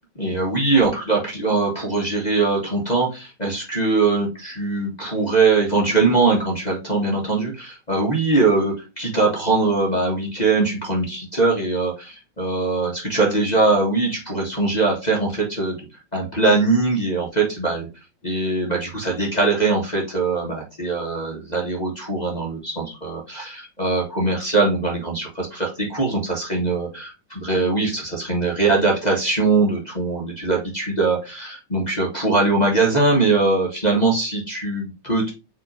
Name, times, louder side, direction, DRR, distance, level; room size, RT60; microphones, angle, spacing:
voice 1, 0.2-17.9 18.2-35.3, right 3 dB, 25° left, -4 dB, 1.6 m, -21 dB
4.9 x 3.7 x 5.2 m, 0.29 s
omnidirectional pair, 2.0 m